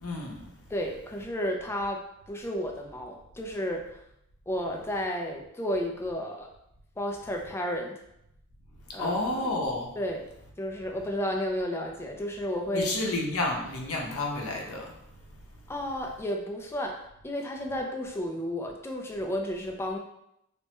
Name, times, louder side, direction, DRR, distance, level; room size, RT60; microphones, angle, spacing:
voice 1, 0.0-0.5 9.0-9.9 12.7-15.0, left 2 dB, 80° left, 0 dB, 0.6 m, -30 dB
voice 2, 0.7-4.0 4.5-6.5 7.0-7.9 8.9-9.5 10.0-10.3 10.6-12.9 15.7-20.0, equal, 10° left, 1 dB, 0.3 m, -32 dB
3.2 x 2.1 x 2.9 m, 0.79 s
head